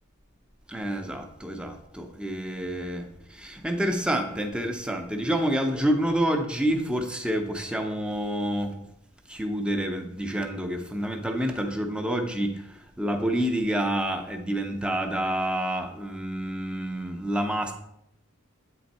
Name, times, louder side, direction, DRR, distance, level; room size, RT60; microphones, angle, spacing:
voice 1, 0.7-8.9 9.3-17.7, right 1 dB, 5° right, 5 dB, 0.6 m, -28 dB
8.6 x 3.4 x 4.1 m, 0.79 s
head